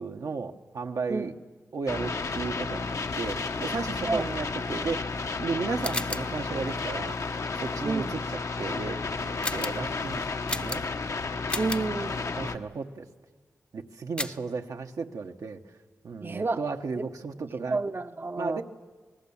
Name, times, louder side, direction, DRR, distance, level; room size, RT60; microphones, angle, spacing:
voice 1, 0.0-1.3 1.7-5.0 5.4-7.2 7.6-8.2 8.6-10.2 10.5-10.8 12.4-13.1 13.7-15.6 16.0-17.8 18.4-18.6, right 4 dB, 85° right, 4 dB, 1.1 m, -34 dB
sound 1, 1.9-12.6, left 4 dB, 65° left, 1.0 m, -32 dB
sound 2, 5.8-6.4 9.4-9.9 10.5-11.1 11.5-11.9 14.2-14.5, left 1 dB, 20° left, 0.7 m, -34 dB
voice 2, 11.6-12.3 16.2-16.6 17.0-17.1 17.7-18.6, right 3 dB, 40° right, 9 dB, 0.7 m, -30 dB
27.5 x 19.5 x 7.2 m, 1.5 s
cardioid pair, 55°, 6 cm